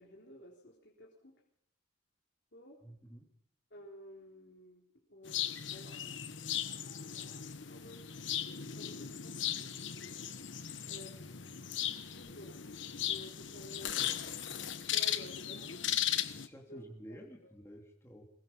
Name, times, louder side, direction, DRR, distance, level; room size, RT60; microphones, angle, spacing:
voice 1, 0.0-1.3 2.5-2.8 3.7-6.0 7.1-8.1 8.7-9.7 10.8-11.3 12.2-12.7 13.0-14.0 14.7-15.8 16.7-16.8 17.1-17.5, left 1 dB, 65° left, -2 dB, 3.7 m, -52 dB
voice 2, 2.8-3.3 16.3-18.3, equal, 15° left, 0 dB, 3.1 m, -51 dB
sound 1, 5.3-16.5, left 10 dB, 80° left, 1.3 m, -37 dB
23.0 x 21.0 x 5.6 m, 0.72 s
head